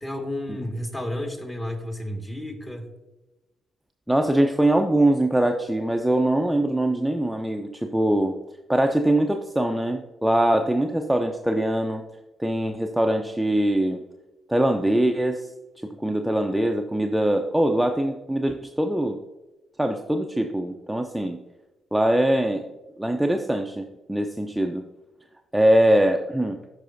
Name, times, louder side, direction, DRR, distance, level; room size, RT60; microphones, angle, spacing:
voice 1, 0.0-2.9, left 1 dB, 25° left, 3 dB, 1.9 m, -32 dB
voice 2, 4.1-8.4 8.7-12.0 12.4-14.0 14.5-15.5 16.0-19.2 19.8-21.4 21.9-22.6 23.0-24.8 25.5-26.6, right 1 dB, 5° right, 4 dB, 0.6 m, -22 dB
12.5 x 4.8 x 2.6 m, 1.1 s
hypercardioid pair, 45°, 0 cm